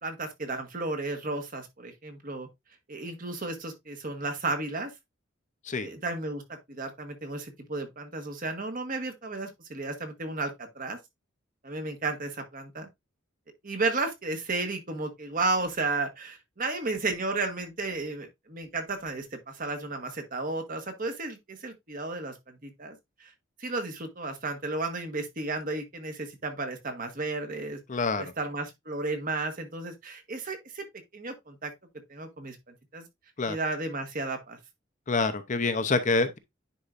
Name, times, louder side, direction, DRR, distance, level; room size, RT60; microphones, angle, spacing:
voice 1, 0.0-2.5 2.9-4.9 5.8-11.0 11.6-12.9 13.6-23.3 23.6-27.8 28.1-30.8 31.1-31.7 32.1-32.6 32.9-33.1 33.5-34.6, right 3 dB, 45° right, 1.5 m, -33 dB
voice 2, 27.9-28.2 33.4-33.6 35.1-36.4, left 3 dB, 40° left, 0.8 m, -26 dB
9.9 x 4.7 x 2.5 m
head